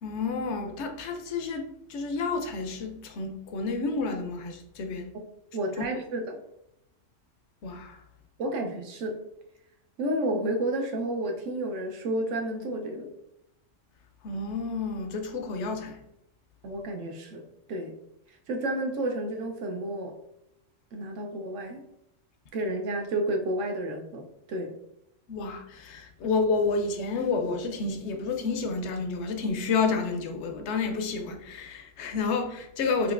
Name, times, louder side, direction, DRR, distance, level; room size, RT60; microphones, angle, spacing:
voice 1, 0.0-5.1 7.6-8.0 14.2-16.0 25.3-33.1, left 4 dB, 70° left, 0.8 m, -30 dB
voice 2, 5.5-6.4 8.4-9.2 10.0-13.1 16.6-17.9 18.5-20.1 20.9-21.8 22.5-24.7, right 1 dB, 70° right, 1.0 m, -31 dB
5.1 x 2.8 x 2.4 m
omnidirectional pair, 1.3 m